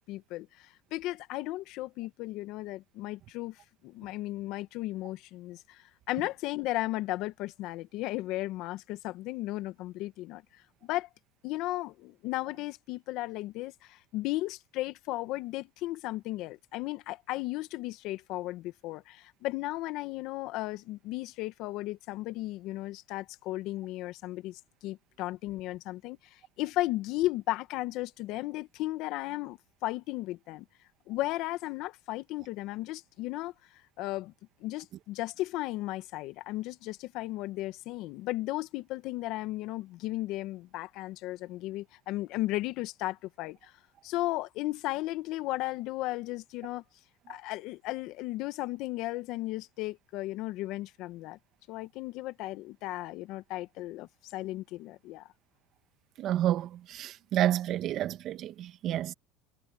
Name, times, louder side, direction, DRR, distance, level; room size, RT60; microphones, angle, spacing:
voice 1, 0.1-10.4 10.8-11.1 11.4-30.6 31.1-33.5 34.0-34.3 34.6-43.7 44.0-46.8 47.3-51.4 51.7-55.3, left 17 dB, 60° left, 1.7 m, -35 dB
voice 2, 56.2-59.1, right 12 dB, 50° right, 1.8 m, -30 dB
supercardioid pair, 115°, 0 cm